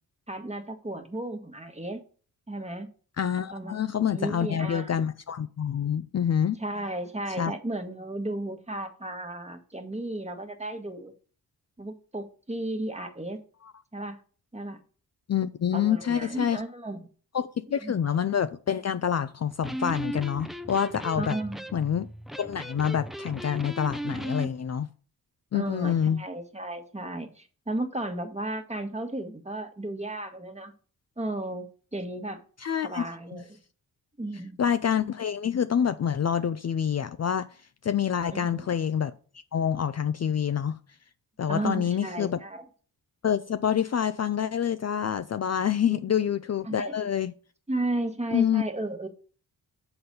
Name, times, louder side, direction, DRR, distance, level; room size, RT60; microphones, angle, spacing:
voice 1, 0.3-2.0 2.5-2.9 3.5-3.8 4.1-5.0 6.6-11.1 11.8-13.4 13.9-14.2 14.5-14.8 15.7-17.1 17.8-18.0 21.2-21.7 25.5-30.7 31.2-32.4 32.8-33.6 34.2-34.6 38.3-38.7 41.5-42.6 46.6-46.9 47.7-49.1, right 1 dB, 15° right, 1.4 m, -34 dB
voice 2, 3.2-6.6 7.4-7.5 13.6-13.7 15.3-16.6 17.3-21.4 21.7-22.1 22.4-24.9 25.5-26.2 32.6-33.4 34.6-37.5 37.8-39.1 39.5-40.8 41.4-42.4 43.2-47.3 48.3-48.6, left 8 dB, 45° left, 0.5 m, -27 dB
Electric guitar, 19.5-24.5, equal, ahead, 0.6 m, -36 dB
7.8 x 4.0 x 6.8 m
cardioid pair, 85°, 39 cm